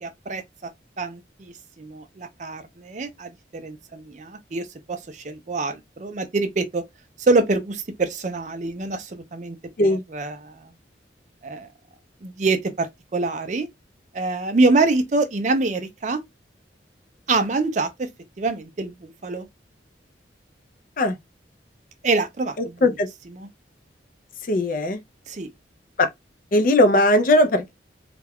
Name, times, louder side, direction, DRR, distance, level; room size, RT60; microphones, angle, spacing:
voice 1, 0.0-0.7 1.0-6.8 7.2-10.6 11.4-11.7 12.2-13.7 14.1-16.2 17.3-18.1 18.4-19.5 22.0-22.9 23.4-23.5 25.3-25.5, right 3 dB, 40° right, 0.4 m, -25 dB
voice 2, 24.5-25.0 26.0-26.1 26.5-27.7, left 1 dB, 45° left, 0.4 m, -18 dB
2.3 x 2.2 x 3.4 m
head